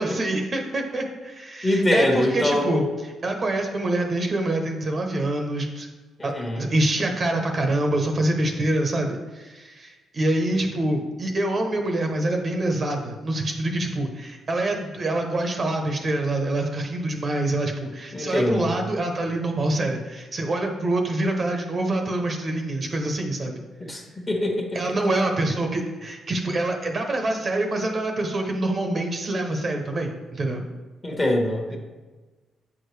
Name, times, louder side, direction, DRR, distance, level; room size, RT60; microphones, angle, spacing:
voice 1, 0.0-2.8 3.2-5.9 6.2-23.6 24.7-30.6, right 1 dB, 40° right, 3 dB, 0.8 m, -26 dB
voice 2, 1.6-2.9 6.2-6.7 18.1-18.7 23.8-24.8 31.0-31.8, left 1 dB, 25° left, 1 dB, 1.3 m, -24 dB
7.3 x 4.7 x 3.2 m, 1.3 s
cardioid pair, 90°, 0 cm